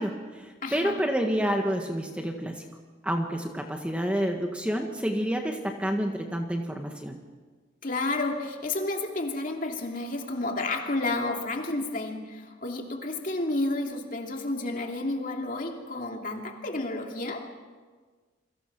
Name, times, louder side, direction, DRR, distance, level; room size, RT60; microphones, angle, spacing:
voice 1, 0.0-2.6 3.0-7.2, equal, 5° right, 1.6 m, -29 dB
voice 2, 0.6-1.0 7.8-17.5, left 2 dB, 40° left, 2.7 m, -31 dB
29.0 x 23.5 x 6.1 m
head